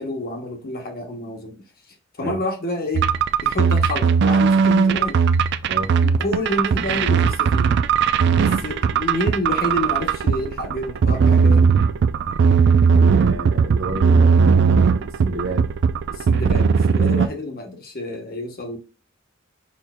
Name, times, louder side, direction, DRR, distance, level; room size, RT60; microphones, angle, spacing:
voice 1, 0.0-1.6 2.2-3.1 3.4-5.2 6.0-7.8 8.4-11.7 16.1-18.8, left 1 dB, 45° left, 1.1 m, -28 dB
sound 1, 2.9-17.3, right 5 dB, 55° right, 0.3 m, -18 dB
voice 2, 5.6-5.9 12.9-15.6, right 2 dB, 75° right, 0.9 m, -30 dB
5.1 x 4.4 x 2.2 m
head